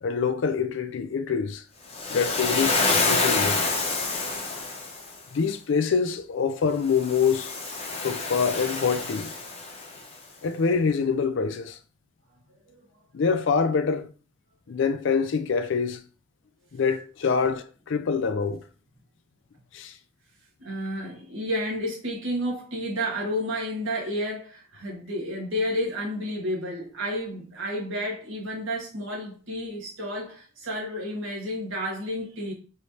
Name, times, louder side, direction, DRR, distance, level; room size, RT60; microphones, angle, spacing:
voice 1, 0.0-1.6 2.1-3.7 5.3-7.5 8.0-9.3 10.4-11.8 13.1-14.1 14.7-16.0 16.7-18.6 19.7-19.9, left 5 dB, 60° left, 0.4 m, -25 dB
Waves surf, 1.9-5.1 6.9-10.0, left 3 dB, 30° left, 0.8 m, -27 dB
voice 2, 20.6-32.5, equal, 70° right, 1.6 m, -31 dB
4.7 x 3.1 x 2.7 m
head